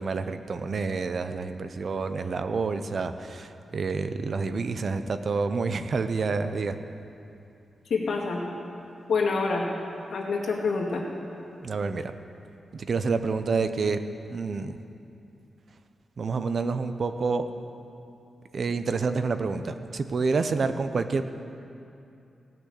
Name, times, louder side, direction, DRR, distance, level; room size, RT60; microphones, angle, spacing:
voice 1, 0.0-6.8 11.6-12.1 12.7-14.0 14.3-14.8 16.2-17.5 18.5-21.3, right 4 dB, 50° right, 9 dB, 0.6 m, -28 dB
voice 2, 7.9-8.4 9.1-9.6 10.1-11.0, left 4 dB, 75° left, -2 dB, 2.1 m, -26 dB
17.0 x 6.1 x 8.3 m, 2.7 s
wide cardioid pair, 125°, 0 cm